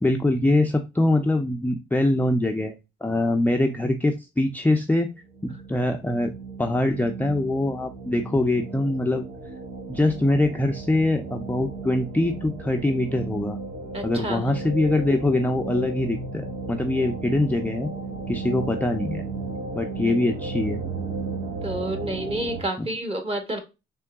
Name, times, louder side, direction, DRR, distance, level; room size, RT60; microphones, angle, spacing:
voice 1, 0.0-2.8 3.0-5.1 5.4-6.3 6.6-9.2 9.9-13.6 14.0-17.9 18.3-19.2 19.7-20.8 22.8-22.9, left 1 dB, 10° left, 3 dB, 0.4 m, -23 dB
sound 1, 5.3-22.6, right 3 dB, 80° right, 0.9 m, -35 dB
voice 2, 13.9-14.5 21.6-23.6, right 1 dB, 30° right, 6 dB, 1.3 m, -29 dB
3.7 x 3.0 x 3.4 m, 0.26 s
cardioid pair, 90°, 20 cm